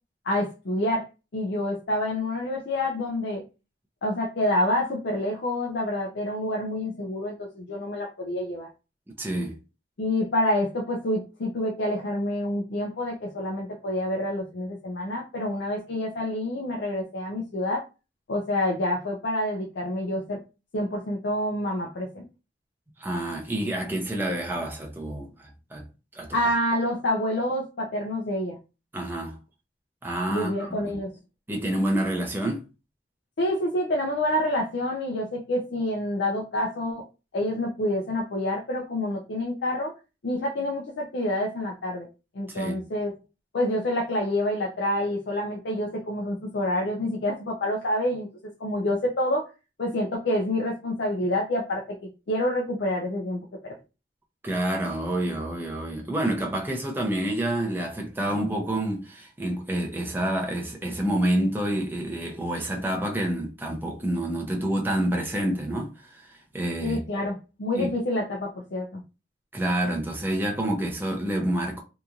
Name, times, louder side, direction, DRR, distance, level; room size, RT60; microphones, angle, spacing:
voice 1, 0.2-1.1 1.3-3.4 4.0-8.7 10.0-17.8 18.3-20.4 20.7-22.3 26.3-28.6 30.3-31.1 33.4-37.0 37.3-39.9 40.2-42.1 42.3-43.1 43.5-48.3 48.6-49.5 49.8-53.7 66.8-69.0, left 1 dB, 65° left, 0.5 m, -27 dB
voice 2, 9.2-9.6 23.0-25.8 26.1-26.4 28.9-29.4 30.0-31.0 31.5-32.6 42.5-42.8 54.4-67.0 67.8-67.9 69.5-71.8, right 1 dB, 10° right, 0.6 m, -28 dB
2.9 x 2.5 x 2.4 m
head